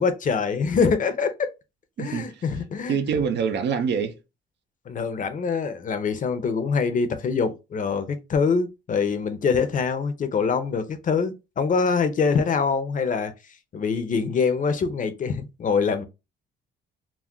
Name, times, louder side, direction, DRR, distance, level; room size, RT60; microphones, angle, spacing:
voice 1, 0.0-1.5 2.0-3.0 4.9-13.3 13.7-16.0, left 5 dB, 40° left, 0.6 m, -24 dB
voice 2, 2.0-2.4 2.9-4.1, right 6 dB, 60° right, 0.5 m, -25 dB
2.4 x 2.1 x 3.6 m
cardioid pair, 90°, 20 cm